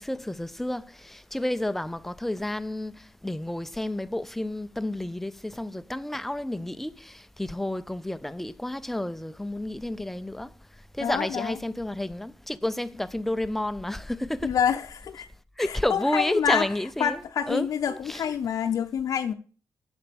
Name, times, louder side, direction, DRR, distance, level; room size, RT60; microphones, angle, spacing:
voice 1, 0.0-10.5 10.9-14.6 15.6-17.2 17.5-18.3, left 1 dB, 5° left, 0.4 m, -31 dB
voice 2, 11.0-11.6 14.4-15.3 15.6-16.7 17.0-19.3, left 8 dB, 60° left, 0.6 m, -27 dB
8.5 x 6.8 x 6.9 m
wide cardioid pair, 145°, 7 cm